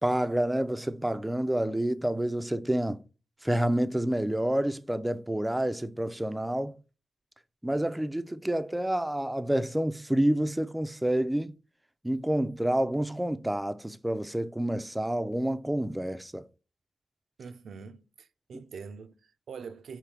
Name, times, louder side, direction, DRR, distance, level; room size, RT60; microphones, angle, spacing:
voice 1, 0.0-3.0 3.4-6.8 7.6-11.5 12.0-16.4 18.5-18.6, right 1 dB, 10° right, 0.5 m, -28 dB
voice 2, 17.4-20.0, right 5 dB, 75° right, 0.5 m, -44 dB
4.6 x 3.2 x 3.4 m
supercardioid pair, 45°, 0 cm